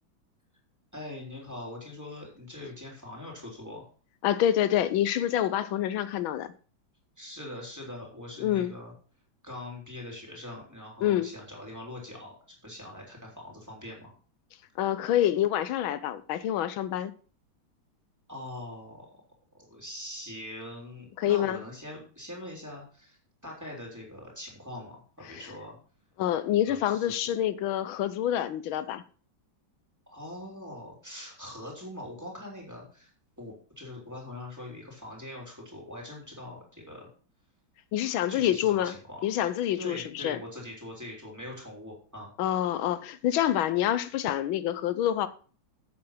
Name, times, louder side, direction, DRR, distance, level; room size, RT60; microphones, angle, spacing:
voice 1, 0.9-3.9 7.2-8.9 9.4-12.4 12.6-14.1 18.3-19.2 19.5-25.8 26.7-27.3 30.1-33.1 33.4-37.1 38.0-39.3 39.7-42.3, left 1 dB, 10° right, 3.7 m, -42 dB
voice 2, 4.2-6.5 8.4-8.7 11.0-11.3 14.8-17.1 21.2-21.6 26.2-29.0 37.9-38.9 39.2-40.4 42.4-45.3, left 11 dB, 85° left, 1.5 m, -27 dB
8.6 x 7.7 x 5.7 m
omnidirectional pair, 2.1 m